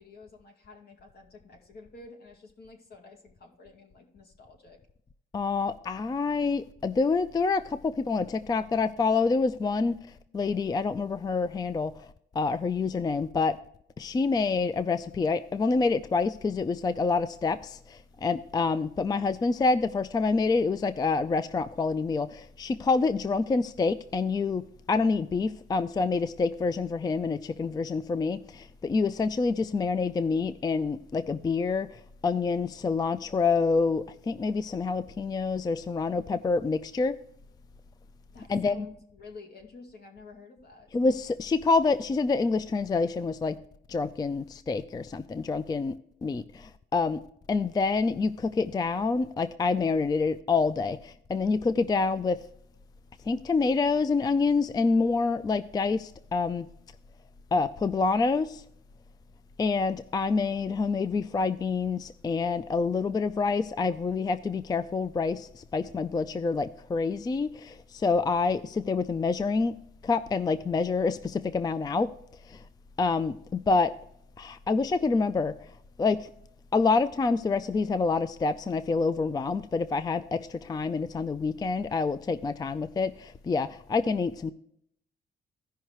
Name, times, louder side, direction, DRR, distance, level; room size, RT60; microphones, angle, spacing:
voice 1, 0.0-4.8 38.3-40.9, left 3 dB, 55° left, 2.1 m, -50 dB
voice 2, 5.3-10.0 10.3-12.1 12.4-13.6 14.0-24.6 24.9-37.2 38.5-38.9 40.9-43.6 43.9-45.9 46.2-47.2 47.5-52.4 53.3-56.7 57.5-58.6 59.6-69.8 70.0-72.1 72.5-72.6 73.0-73.9 74.4-75.7 76.0-76.3 76.7-84.5, left 4 dB, 20° left, 0.3 m, -27 dB
15.5 x 5.6 x 3.1 m
cardioid pair, 110°, 20 cm